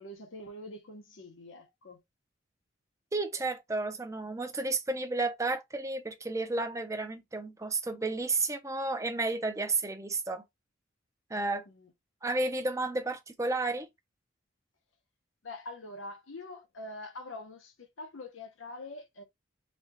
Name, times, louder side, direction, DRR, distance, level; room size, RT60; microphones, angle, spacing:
voice 1, 0.0-2.0 11.7-11.9 15.4-19.2, left 2 dB, 85° left, 1.0 m, -44 dB
voice 2, 3.1-10.4 11.3-11.6 12.2-13.9, right 3 dB, 15° right, 0.6 m, -32 dB
4.2 x 2.4 x 2.8 m
head